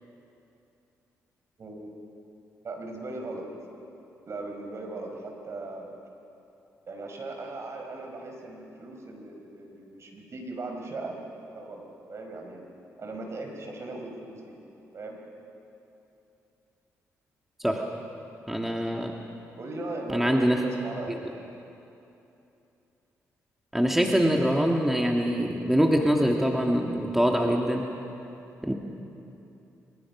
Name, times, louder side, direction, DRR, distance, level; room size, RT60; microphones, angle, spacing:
voice 1, 1.6-1.9 2.6-3.5 4.3-5.9 6.9-11.2 11.5-12.6 13.0-14.5 14.9-15.2 19.6-21.4, right 2 dB, 50° right, 2 dB, 5.1 m, -38 dB
voice 2, 18.5-19.1 20.1-20.6 23.7-27.9 28.6-28.7, equal, 5° right, 1 dB, 1.9 m, -24 dB
25.5 x 23.5 x 6.1 m, 2.8 s
cardioid pair, 75°, 6 cm